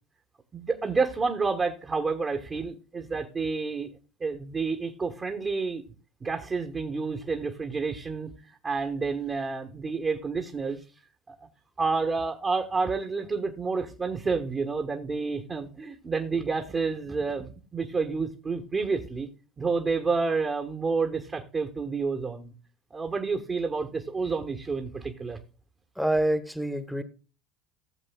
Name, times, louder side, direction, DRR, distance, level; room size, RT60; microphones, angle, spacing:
voice 1, 0.5-3.9 4.2-5.8 6.2-8.3 8.6-10.8 11.3-11.4 11.8-19.3 19.6-22.5 22.9-25.4, right 4 dB, 30° right, 1.4 m, -29 dB
voice 2, 26.0-27.0, right 1 dB, ahead, 1.2 m, -26 dB
15.5 x 7.5 x 2.3 m
hypercardioid pair, 70°, 0 cm